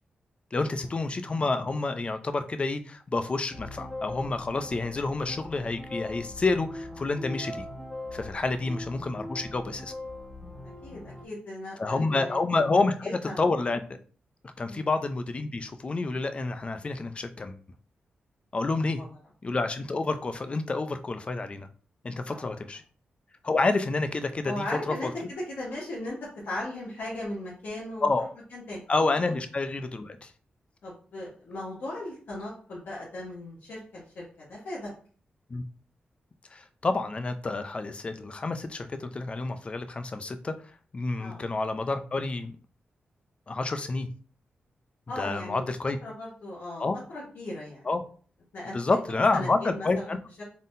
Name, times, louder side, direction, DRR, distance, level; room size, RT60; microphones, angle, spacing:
voice 1, 0.5-7.6 8.1-9.9 11.8-13.8 14.6-17.6 18.5-19.0 19.4-21.7 22.0-22.8 23.4-25.3 28.0-28.3 28.9-30.3 35.5-35.6 36.5-40.5 40.9-42.6 43.5-44.1 45.2-46.0 46.8-47.0 47.9-48.0 48.7-50.2, left 3 dB, 35° left, 9 dB, 0.5 m, -29 dB
sound 1, 3.5-11.3, left 1 dB, 5° left, 1.3 m, -40 dB
voice 2, 10.8-12.4 13.0-13.5 14.7-14.9 18.8-18.9 22.3-22.6 24.4-26.2 26.4-28.1 28.5-28.8 30.8-34.9 41.2-41.4 45.1-45.6 46.0-46.8 47.1-47.9 48.5-50.4, left 1 dB, 75° left, -6 dB, 1.3 m, -37 dB
4.0 x 3.6 x 2.6 m, 0.42 s
cardioid pair, 90°, 3 cm